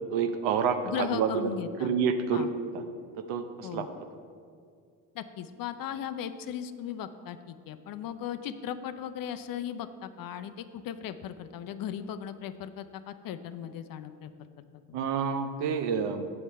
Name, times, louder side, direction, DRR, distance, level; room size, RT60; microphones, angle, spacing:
voice 1, 0.1-1.5 1.8-2.5 2.7-2.8 3.3-3.9 14.9-16.3, right 6 dB, 70° right, 8 dB, 0.8 m, -28 dB
voice 2, 0.8-1.9 2.3-2.5 3.6-3.9 5.1-14.3 14.9-15.0, left 9 dB, 50° left, 10 dB, 0.5 m, -37 dB
7.2 x 6.8 x 4.2 m, 2.2 s
hypercardioid pair, 65°, 45 cm